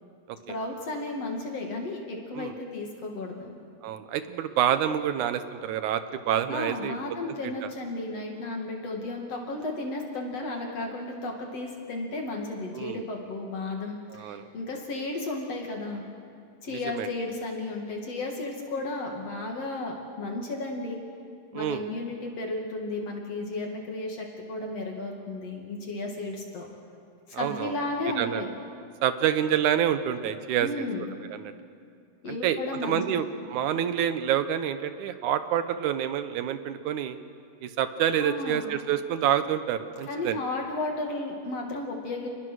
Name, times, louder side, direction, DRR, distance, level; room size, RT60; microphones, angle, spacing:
voice 1, 0.5-3.5 6.5-16.0 16.6-21.0 21.5-26.7 27.4-28.5 30.6-31.1 32.2-33.2 38.2-38.8 40.1-42.3, left 2 dB, 50° left, 1 dB, 3.2 m, -34 dB
voice 2, 3.8-7.0 7.4-7.7 12.7-13.0 14.1-14.4 16.7-17.1 21.5-21.8 27.3-27.8 28.2-28.4 29.0-30.7 31.3-31.5 32.3-37.2 37.6-40.4, right 10 dB, 70° right, 10 dB, 2.2 m, -27 dB
29.0 x 21.0 x 6.3 m, 2.3 s
omnidirectional pair, 4.0 m